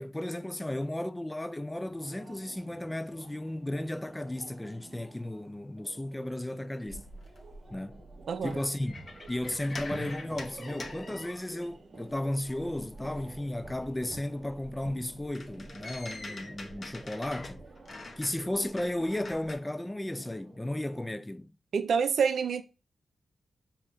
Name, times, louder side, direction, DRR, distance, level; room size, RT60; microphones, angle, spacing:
voice 1, 0.0-7.0 7.7-8.0 8.4-9.0 9.3-17.6 18.2-21.5, left 1 dB, 15° left, 0.4 m, -34 dB
sound 1, 1.7-21.2, right 2 dB, 55° right, 1.2 m, -50 dB
sound 2, 6.9-11.8 12.1-19.6, left 2 dB, 50° left, 1.0 m, -46 dB
voice 2, 8.3-8.6 21.7-22.6, right 6 dB, 75° right, 0.5 m, -27 dB
5.4 x 2.8 x 3.3 m
supercardioid pair, 40°, 0 cm